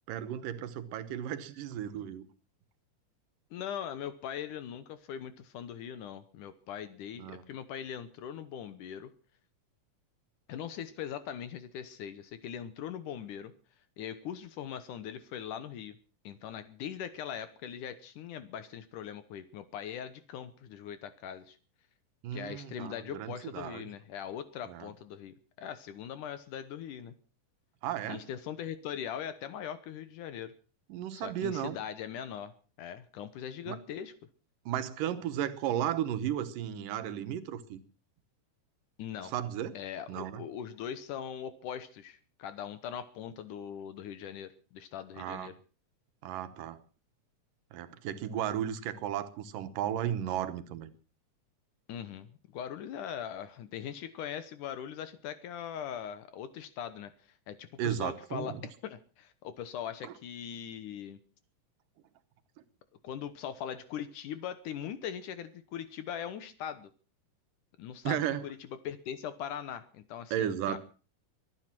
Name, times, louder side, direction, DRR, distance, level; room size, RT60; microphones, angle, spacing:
voice 1, 0.1-2.3 7.2-7.4 22.2-23.8 24.7-24.9 27.8-28.2 30.9-31.8 33.7-33.8 34.7-37.8 39.2-39.8 40.1-40.4 45.2-45.5 46.2-46.8 47.7-50.9 57.8-58.6 68.0-68.5 70.3-70.8, right 10 dB, 85° right, 10 dB, 2.8 m, -34 dB
voice 2, 3.5-9.1 10.5-13.5 14.0-16.0 16.2-21.6 22.3-27.1 28.1-30.5 31.1-32.5 32.8-34.1 39.0-39.3 39.7-45.5 51.9-57.1 57.5-58.5 58.8-61.2 63.0-66.9 67.8-68.6 68.8-70.8, left 9 dB, 75° left, 12 dB, 2.6 m, -41 dB
23.5 x 9.8 x 6.0 m, 0.38 s
omnidirectional pair, 3.7 m